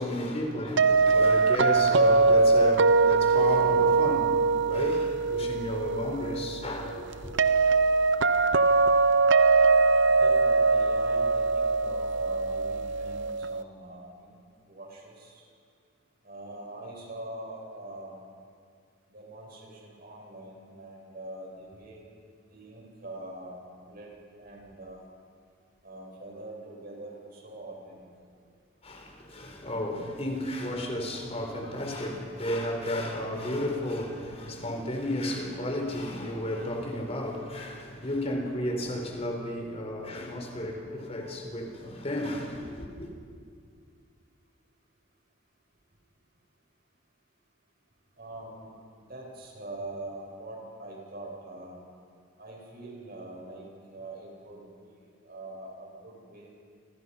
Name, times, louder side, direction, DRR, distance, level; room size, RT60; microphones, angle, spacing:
voice 1, 0.0-7.3 28.8-43.1, left 1 dB, 30° left, 4.2 m, -33 dB
sound 1, 0.8-13.6, right 4 dB, 65° right, 0.7 m, -22 dB
voice 2, 10.1-14.4 14.7-15.5 16.2-18.2 19.1-22.0 22.4-25.1 25.8-28.1 39.8-39.9 40.2-40.3 48.2-51.8 52.4-56.5, right 2 dB, 50° right, 7.9 m, -43 dB
28.0 x 28.0 x 5.7 m
head